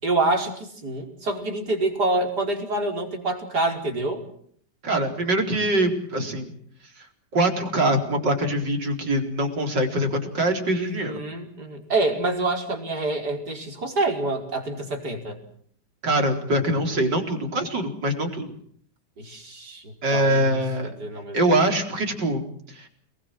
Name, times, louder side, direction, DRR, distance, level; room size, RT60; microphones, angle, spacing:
voice 1, 0.0-4.2 10.7-15.4 19.2-20.6 21.0-21.7, right 2 dB, 70° right, 2 dB, 5.6 m, -27 dB
voice 2, 4.8-6.5 7.0-7.1 7.3-11.2 16.0-18.5 20.0-20.9 21.3-22.9, right 1 dB, 85° right, 3 dB, 4.9 m, -23 dB
29.5 x 21.0 x 7.7 m, 0.62 s
omnidirectional pair, 1.8 m